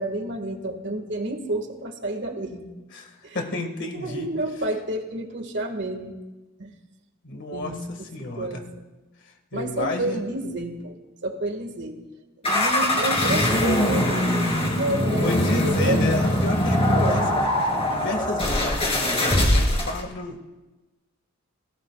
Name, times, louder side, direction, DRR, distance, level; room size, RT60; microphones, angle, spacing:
voice 1, 0.0-2.9 3.2-3.4 3.9-6.1 6.6-6.7 7.5-8.9 9.5-11.0 11.2-12.0 12.5-16.0 16.9-17.2, right 2 dB, 50° right, 4 dB, 2.0 m, -30 dB
voice 2, 2.9-4.3 7.2-8.6 9.2-10.3 15.2-20.5, left 2 dB, 55° left, 3 dB, 2.1 m, -32 dB
sound 1, 12.4-20.0, left 1 dB, 25° left, 3.0 m, -22 dB
29.5 x 19.0 x 2.5 m, 1.1 s
head